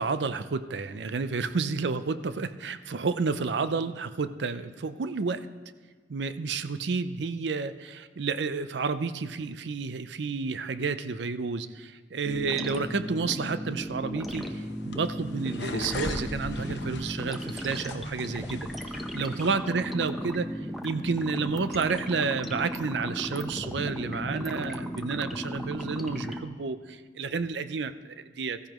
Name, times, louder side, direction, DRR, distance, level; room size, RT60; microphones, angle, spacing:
voice 1, 0.0-5.5 6.1-28.6, right 4 dB, 70° right, 12 dB, 0.5 m, -31 dB
sound 1, 12.2-26.4, equal, ahead, 0.8 m, -36 dB
sound 2, 14.3-19.5, left 2 dB, 70° left, 0.9 m, -40 dB
15.5 x 15.5 x 3.0 m, 1.5 s
head